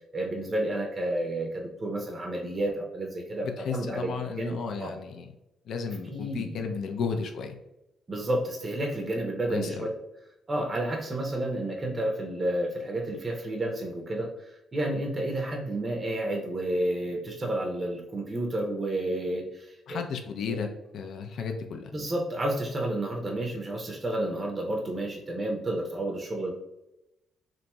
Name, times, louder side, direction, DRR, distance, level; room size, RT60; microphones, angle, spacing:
voice 1, 0.1-4.9 6.1-6.7 8.1-9.9 10.5-20.0 20.5-20.6 21.9-26.5, right 1 dB, 30° right, 0 dB, 0.5 m, -31 dB
voice 2, 3.4-5.3 5.7-7.5 9.5-9.9 19.9-20.7 20.9-21.9, left 5 dB, 70° left, 5 dB, 0.4 m, -33 dB
2.9 x 2.6 x 2.2 m, 0.90 s
cardioid pair, 90°, 0 cm